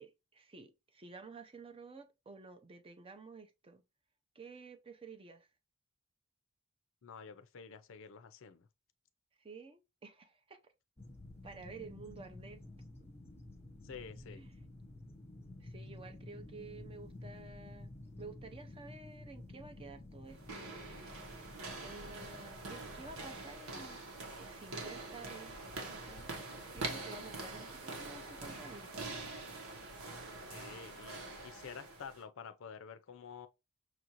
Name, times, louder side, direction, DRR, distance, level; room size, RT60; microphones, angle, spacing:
voice 1, 0.0-3.8 4.3-5.5 9.4-10.7 11.4-12.6 13.0-13.1 14.3-14.5 15.6-17.9 18.2-20.7 21.8-24.0 24.4-25.6 25.9-26.3 26.7-28.9, right 4 dB, 25° right, 0.5 m, -52 dB
voice 2, 7.0-8.7 13.8-14.4 22.1-22.6 30.5-33.5, left 6 dB, 65° left, 0.5 m, -50 dB
sound 1, 11.0-23.5, left 2 dB, 10° left, 0.9 m, -52 dB
sound 2, 20.3-32.2, right 3 dB, 85° right, 1.2 m, -45 dB
6.1 x 2.5 x 2.9 m
head